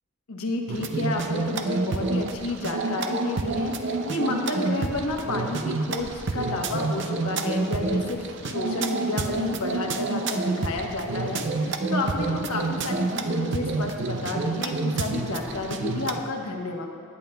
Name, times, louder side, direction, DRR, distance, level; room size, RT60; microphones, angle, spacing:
voice 1, 0.3-16.9, left 2 dB, 85° left, 1 dB, 1.1 m, -31 dB
sound 1, 0.7-16.2, right 3 dB, 55° right, 0.5 m, -28 dB
18.5 x 9.0 x 2.3 m, 2.5 s
head